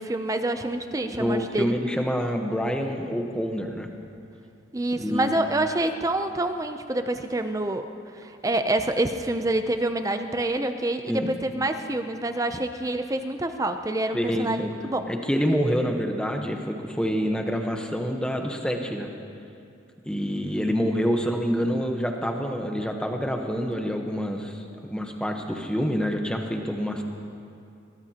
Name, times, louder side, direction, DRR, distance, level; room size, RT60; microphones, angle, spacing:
voice 1, 0.0-1.8 4.7-7.9 8.2-15.1, right 1 dB, 15° right, 8 dB, 0.5 m, -27 dB
voice 2, 1.1-3.9 5.0-5.4 11.1-11.3 14.1-14.7 15.1-19.1 20.1-27.0, equal, 5° left, 3 dB, 1.0 m, -27 dB
22.5 x 17.5 x 2.9 m, 2.6 s
head